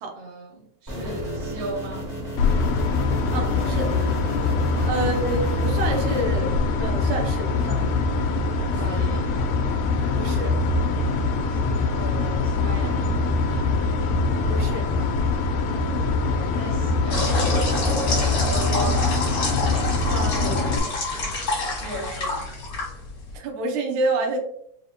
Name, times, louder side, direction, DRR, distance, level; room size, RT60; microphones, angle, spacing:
voice 1, 0.1-2.1 4.8-4.9 8.8-9.3 11.5-13.1 13.4-13.8 16.3-17.9 18.5-19.1 21.8-22.4, right 1 dB, 40° right, -4 dB, 1.1 m, -36 dB
sound 1, 0.9-6.2, left 1 dB, 15° right, 0.6 m, -33 dB
sound 2, 2.4-20.8, left 3 dB, 80° left, 1.7 m, -23 dB
voice 2, 3.3-3.9 4.8-7.8 8.7-8.8 10.2-10.6 14.5-14.9 20.1-21.0 23.3-24.4, right 2 dB, 80° right, 2 dB, 2.1 m, -28 dB
sound 3, 17.1-23.3, left 2 dB, 55° left, 1.0 m, -28 dB
5.0 x 2.7 x 2.7 m, 0.70 s
omnidirectional pair, 3.4 m